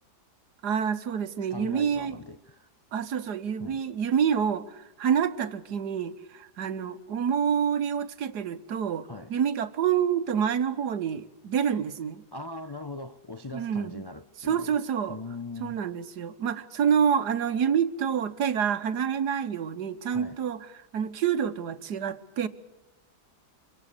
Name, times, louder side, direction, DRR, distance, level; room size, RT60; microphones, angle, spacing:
voice 1, 0.6-2.2 2.9-9.0 9.3-12.2 13.5-14.1 14.4-15.2 15.6-20.7 20.9-22.5, right 8 dB, 75° right, 1.6 m, -27 dB
voice 2, 1.5-2.7 3.6-3.8 9.0-9.3 12.3-14.8 15.1-15.8 20.1-20.4, left 2 dB, 35° left, 0.4 m, -40 dB
25.5 x 24.5 x 6.7 m
omnidirectional pair, 1.8 m